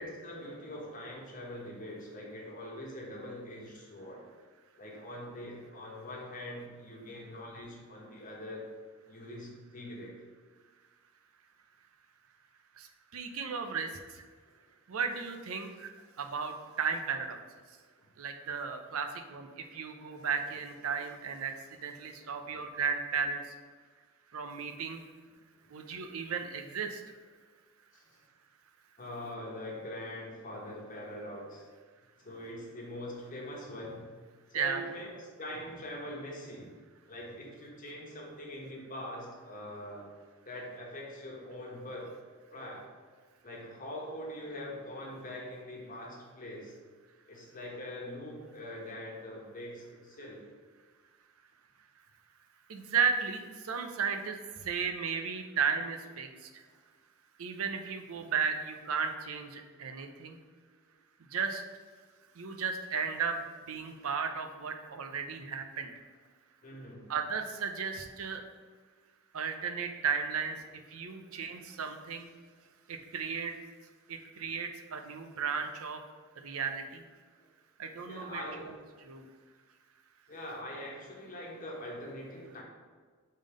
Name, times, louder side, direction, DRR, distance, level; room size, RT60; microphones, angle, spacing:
voice 1, 0.0-4.3 4.8-8.7 9.1-10.1 18.0-18.1 20.1-20.3 22.2-22.4 25.6-25.7 27.9-28.2 29.0-31.7 32.2-34.1 34.5-36.7 37.1-40.1 40.4-42.2 42.5-42.9 43.4-46.8 47.3-50.4 56.7-56.8 63.9-64.0 66.6-67.1 71.1-71.3 78.1-78.7 80.3-82.6, left 1 dB, 40° left, -2 dB, 1.3 m, -43 dB
voice 2, 12.8-14.3 14.9-15.9 16.2-17.4 18.2-23.5 24.3-25.0 25.7-27.0 34.5-34.8 52.7-56.6 57.4-60.4 61.3-61.6 62.4-65.9 67.1-68.4 69.3-70.6 70.9-72.3 72.9-73.5 74.1-76.0 76.4-77.0 77.8-78.7 79.0-79.3, right 6 dB, 70° right, 5 dB, 0.6 m, -35 dB
5.4 x 3.8 x 5.0 m, 1.5 s
head